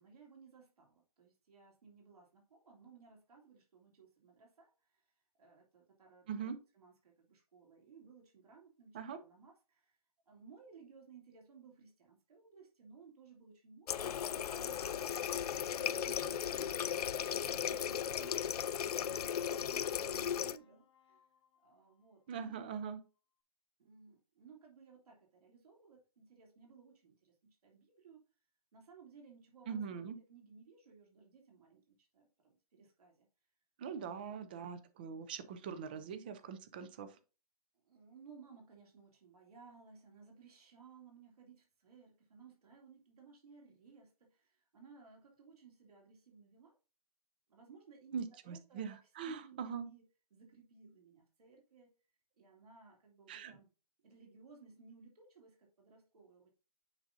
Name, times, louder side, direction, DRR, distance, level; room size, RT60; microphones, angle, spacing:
voice 1, 0.0-5.1 5.4-10.0 10.3-18.6 18.9-21.3 21.6-22.6 23.8-28.2 28.7-33.3 33.9-34.4 37.8-46.7 47.5-50.0 50.3-51.9 52.4-53.7 54.0-56.5, right 5 dB, 75° right, -1 dB, 3.0 m, -60 dB
Water tap faucet, 13.9-20.6, left 9 dB, 75° left, 0.5 m, -36 dB
sound 1, 15.9-22.0, left 8 dB, 45° left, 0.9 m, -61 dB
voice 2, 22.3-23.0 29.7-30.2 33.8-37.1 48.1-49.9 53.3-53.5, right 6 dB, 15° right, 12 dB, 0.4 m, -42 dB
8.7 x 5.3 x 2.6 m, 0.33 s
hypercardioid pair, 165°, 20 cm